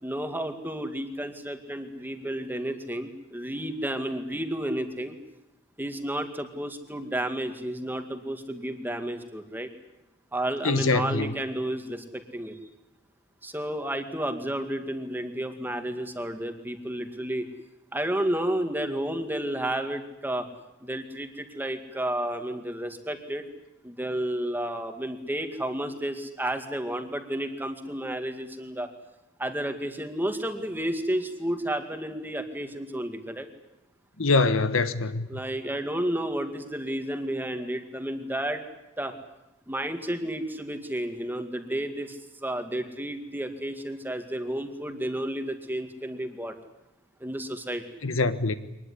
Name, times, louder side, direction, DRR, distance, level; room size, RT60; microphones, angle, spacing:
voice 1, 0.0-5.1 5.8-9.7 10.3-12.6 13.4-17.5 17.9-20.5 20.8-23.4 23.8-28.9 29.4-33.5 35.3-38.6 39.0-39.1 39.7-46.6 47.2-47.8, right 1 dB, 10° right, 2.2 m, -31 dB
voice 2, 10.6-11.3 34.2-35.3 48.0-48.5, left 3 dB, 80° left, 1.3 m, -24 dB
24.0 x 20.5 x 9.9 m
head